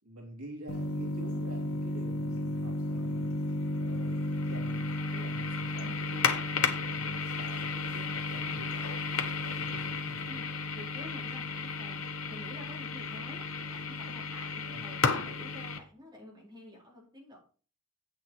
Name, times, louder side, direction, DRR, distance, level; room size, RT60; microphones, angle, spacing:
voice 1, 0.0-3.4 3.8-4.2 4.5-10.4 14.7-14.8, right 1 dB, 75° right, -1 dB, 3.0 m, -47 dB
sound 1, 0.7-15.8, left 3 dB, 70° left, 1.1 m, -33 dB
voice 2, 10.7-12.0 12.3-17.4, left 1 dB, 20° right, -4 dB, 4.4 m, -49 dB
8.4 x 6.7 x 4.8 m, 0.41 s
head